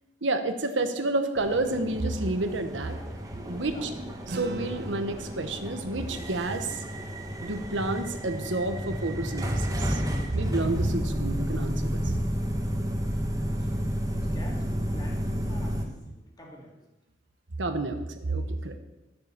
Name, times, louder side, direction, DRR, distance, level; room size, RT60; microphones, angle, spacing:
voice 1, 0.2-3.0 3.4-3.9 4.3-6.8 7.4-10.0 10.3-12.1 17.6-18.8, right 2 dB, 85° right, 7 dB, 1.1 m, -30 dB
sound 1, 1.4-15.8, equal, 20° right, 1.5 m, -31 dB
voice 2, 3.6-3.9 13.4-13.7 14.0-16.8 18.6-18.7, equal, 20° left, -1 dB, 2.5 m, -47 dB
sound 2, 4.3-8.9, right 2 dB, 60° right, 0.9 m, -44 dB
11.5 x 7.5 x 7.3 m, 1.0 s
head